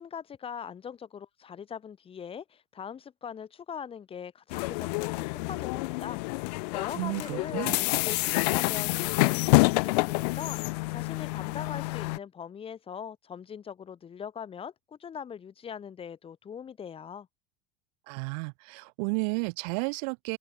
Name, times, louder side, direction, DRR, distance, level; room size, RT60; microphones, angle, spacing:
voice 1, 0.0-17.3, left 7 dB, 25° left, 2.8 m, -41 dB
sound 1, 4.5-12.2, left 27 dB, 75° left, 1.0 m, -27 dB
voice 2, 6.9-7.8 18.1-20.4, right 36 dB, 70° right, 0.8 m, -32 dB
open air
supercardioid pair, 125°, 21 cm